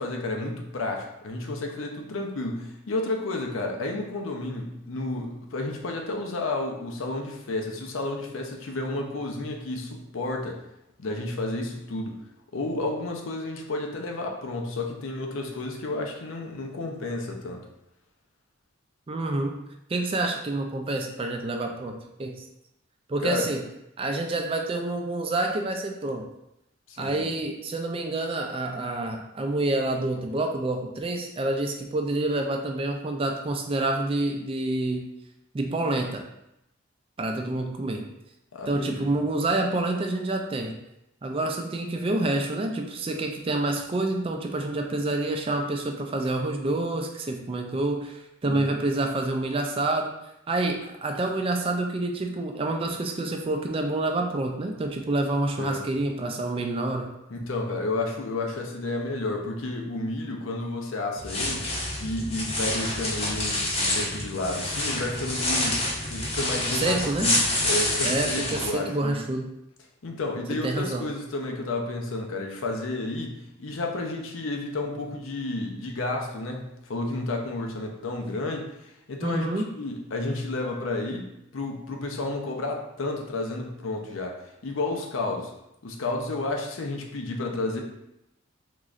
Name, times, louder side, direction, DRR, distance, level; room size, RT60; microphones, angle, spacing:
voice 1, 0.0-10.6 11.0-12.2 12.5-17.7 23.2-23.5 26.9-27.2 38.5-39.1 48.5-48.7 55.6-55.8 57.3-61.7 62.0-69.2 70.0-79.5 79.8-85.5 85.8-87.8, left 2 dB, 75° left, 2 dB, 0.6 m, -31 dB
voice 2, 19.1-19.6 19.9-21.9 22.2-22.4 23.1-23.6 24.0-26.2 27.0-35.1 35.5-36.2 37.2-38.0 38.7-40.8 41.2-50.1 50.5-57.1 66.8-67.3 68.0-69.4 70.5-71.0 79.2-79.7, right 2 dB, 25° right, 3 dB, 0.3 m, -28 dB
sound 1, 61.2-68.7, left 1 dB, 30° left, 0.7 m, -27 dB
3.7 x 3.1 x 2.4 m, 0.86 s
head